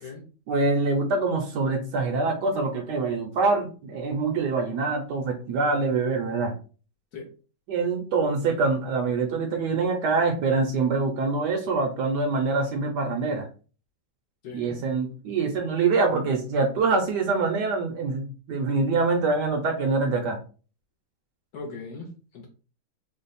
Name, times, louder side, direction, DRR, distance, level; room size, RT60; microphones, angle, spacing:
voice 1, 0.5-6.5 7.7-13.5 14.5-20.4, right 4 dB, 70° right, 3 dB, 1.1 m, -25 dB
voice 2, 14.4-14.9 21.5-22.5, left 4 dB, 65° left, 1 dB, 1.0 m, -40 dB
3.2 x 2.1 x 4.0 m, 0.37 s
omnidirectional pair, 2.2 m